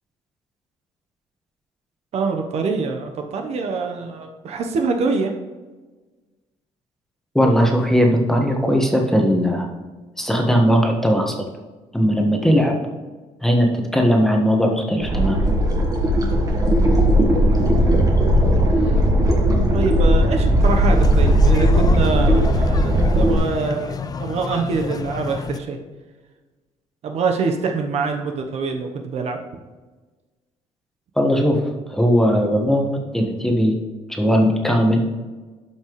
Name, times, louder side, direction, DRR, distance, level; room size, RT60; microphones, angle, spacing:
voice 1, 2.1-5.3 18.8-19.0 19.7-25.8 27.0-29.4, right 4 dB, 60° right, 4 dB, 1.0 m, -25 dB
voice 2, 7.3-9.7 10.2-11.5 11.9-12.8 13.4-15.5 31.2-33.7 34.1-35.2, equal, 5° left, 1 dB, 1.4 m, -18 dB
sound 1, 15.0-23.4, equal, 30° right, 1.5 m, -17 dB
sound 2, 20.6-25.6, left 6 dB, 30° left, 0.5 m, -30 dB
12.0 x 5.8 x 3.2 m, 1.3 s
cardioid pair, 120°, 12 cm